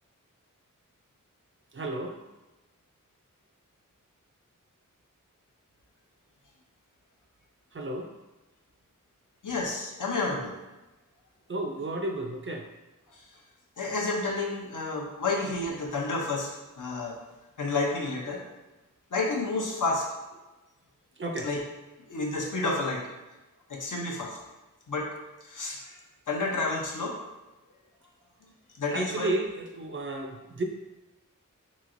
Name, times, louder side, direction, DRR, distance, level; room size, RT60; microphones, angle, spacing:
voice 1, 1.7-2.2 7.7-8.1 11.5-12.7 21.2-21.5 28.9-30.6, right 2 dB, 40° right, 3 dB, 0.4 m, -32 dB
voice 2, 9.4-10.6 13.8-16.5 16.8-17.2 17.6-18.4 19.1-20.1 21.4-21.6 22.1-23.0 23.7-24.4 24.9-25.1 25.4-26.0 26.3-27.2 28.8-29.3, left 3 dB, 65° left, -2 dB, 0.7 m, -30 dB
3.0 x 2.8 x 2.5 m, 1.1 s
wide cardioid pair, 45°, 33 cm